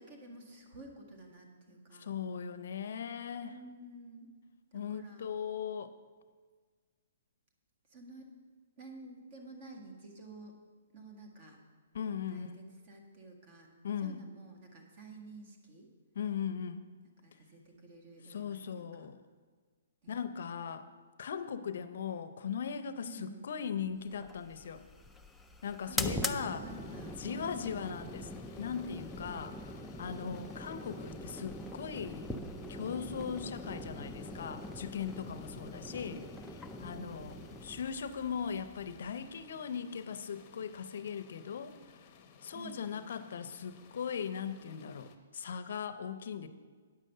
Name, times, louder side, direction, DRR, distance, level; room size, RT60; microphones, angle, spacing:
voice 1, 0.0-2.1 3.4-4.3 4.7-5.3 7.9-8.3 8.8-10.5 10.9-11.6 12.3-13.7 14.0-15.9 17.2-19.1 20.0-20.3 21.6-21.9 23.0-23.5 25.9-27.9 30.2-30.5 36.9-37.6 42.5-42.9, right 2 dB, 40° right, 3 dB, 1.8 m, -51 dB
voice 2, 2.0-3.5 4.7-5.9 11.9-12.5 13.8-14.2 16.2-16.8 18.3-19.2 20.1-20.8 21.2-24.8 25.6-26.6 27.2-28.3 28.6-29.6 30.0-32.3 32.7-36.3 36.5-41.8 42.4-46.5, left 7 dB, 60° left, 12 dB, 0.6 m, -39 dB
sound 1, 24.1-39.4, left 1 dB, 5° left, 0.3 m, -43 dB
sound 2, 26.7-45.2, left 6 dB, 25° left, 0.8 m, -58 dB
9.4 x 6.5 x 6.6 m, 1.5 s
hypercardioid pair, 160°, 0 cm